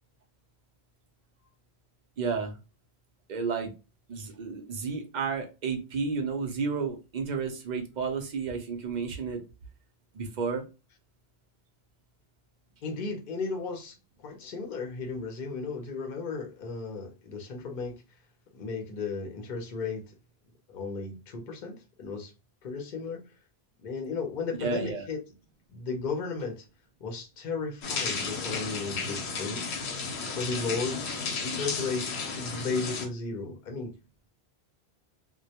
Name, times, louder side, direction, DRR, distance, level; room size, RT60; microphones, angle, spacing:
voice 1, 2.2-2.5 3.3-3.7 4.1-9.4 10.2-10.6 24.6-25.0, right 5 dB, 55° right, 0.5 m, -31 dB
voice 2, 12.8-13.9 14.2-18.0 18.5-20.0 20.7-22.3 22.6-23.2 23.8-25.2 25.7-26.6 27.0-29.7 30.3-31.1 31.4-33.9, left 4 dB, 55° left, 0.7 m, -35 dB
sound 1, 27.8-33.1, left 4 dB, 85° left, 0.9 m, -33 dB
2.1 x 2.1 x 2.7 m
omnidirectional pair, 1.1 m